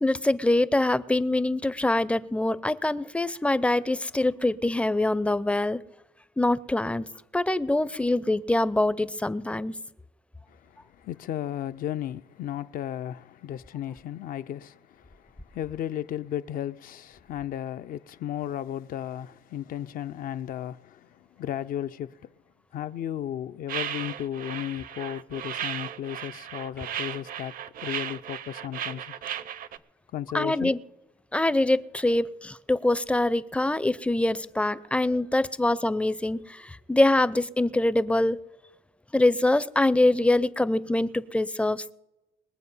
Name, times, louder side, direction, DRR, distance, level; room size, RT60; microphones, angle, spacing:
voice 1, 0.0-5.8 6.4-7.1 7.3-9.8 30.3-30.8 31.3-38.4 39.1-41.9, left 2 dB, 5° left, 0.5 m, -24 dB
voice 2, 10.5-22.3 22.7-27.5 27.8-29.2 30.1-30.7, left 11 dB, 55° left, 0.5 m, -35 dB
sound 1, 23.7-29.8, right 10 dB, 55° right, 0.7 m, -35 dB
21.5 x 7.5 x 5.5 m
cardioid pair, 110°, 17 cm